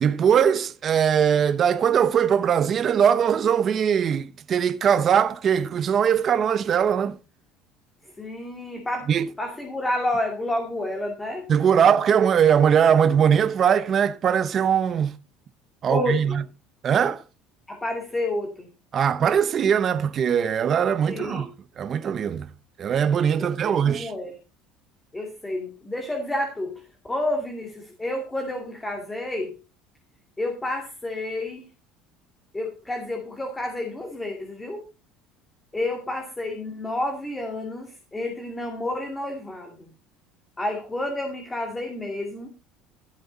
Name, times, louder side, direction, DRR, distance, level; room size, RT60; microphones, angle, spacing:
voice 1, 0.0-7.2 9.1-9.3 11.5-15.1 15.8-16.4 16.8-17.2 18.9-21.5 21.8-22.5 22.8-24.1, right 8 dB, 35° right, 0.9 m, -21 dB
voice 2, 8.2-9.1 9.4-11.5 15.9-16.4 17.7-18.7 21.1-21.5 23.4-24.3 25.1-26.8 27.1-29.5 30.4-31.6 32.5-34.9 35.7-39.8 40.6-42.5, left 1 dB, 10° left, 2.6 m, -30 dB
15.5 x 7.8 x 4.0 m
cardioid pair, 145°, 0 cm